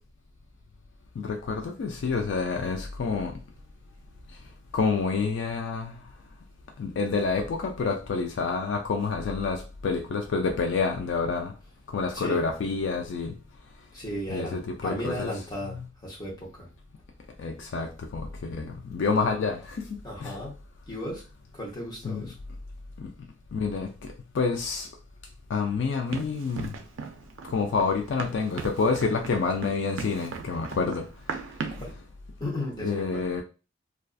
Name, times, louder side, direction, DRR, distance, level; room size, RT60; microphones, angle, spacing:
voice 1, 1.2-3.3 4.7-6.0 6.8-11.5 11.9-13.3 14.3-15.3 15.7-15.9 17.4-20.4 22.0-22.3 23.0-23.1 23.5-24.9 25.5-26.7 27.5-31.0 32.8-33.4, left 4 dB, 60° left, 0.3 m, -28 dB
voice 2, 13.9-16.7 20.0-20.6 20.9-21.2 21.5-22.3 31.7-31.9 32.4-33.2, equal, 20° left, 0.8 m, -35 dB
Run, 26.1-31.9, right 5 dB, 70° right, 0.4 m, -38 dB
2.4 x 2.3 x 2.3 m
head